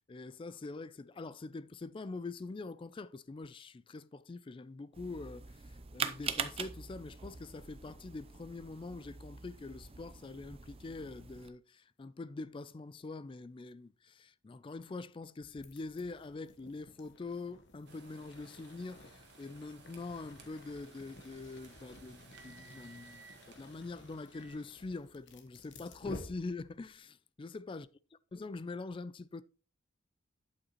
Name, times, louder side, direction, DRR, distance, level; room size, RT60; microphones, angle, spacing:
voice 1, 0.0-27.9 28.3-29.4, left 3 dB, 25° left, 0.3 m, -44 dB
sound 1, 4.9-11.5, right 6 dB, 30° right, 0.6 m, -43 dB
sound 2, 15.4-27.0, left 2 dB, 60° left, 1.1 m, -54 dB
sound 3, 17.9-25.0, right 4 dB, 55° right, 1.6 m, -59 dB
8.7 x 7.8 x 3.0 m
head